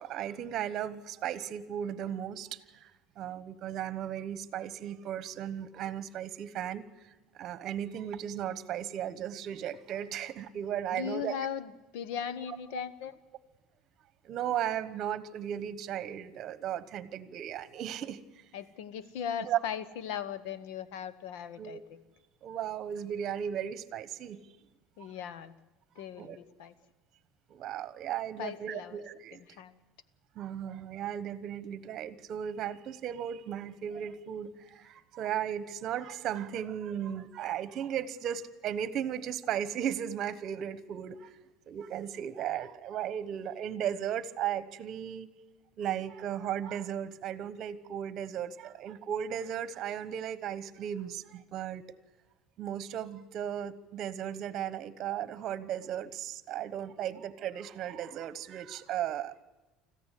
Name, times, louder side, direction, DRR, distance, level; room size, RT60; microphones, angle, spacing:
voice 1, 0.0-2.9 3.2-7.1 7.4-11.4 14.2-18.2 19.5-19.6 21.6-21.8 22.4-24.4 25.0-25.1 26.0-26.4 27.5-29.6 30.3-41.4 41.7-45.3 45.8-51.8 52.6-59.4, right 10 dB, 45° right, 15 dB, 1.2 m, -36 dB
voice 2, 10.9-13.2 18.5-22.0 25.0-25.5 25.9-26.7 28.4-29.0 29.6-29.8, left 8 dB, 80° left, 15 dB, 1.2 m, -38 dB
25.5 x 14.5 x 8.4 m, 1.1 s
cardioid pair, 150°, 0 cm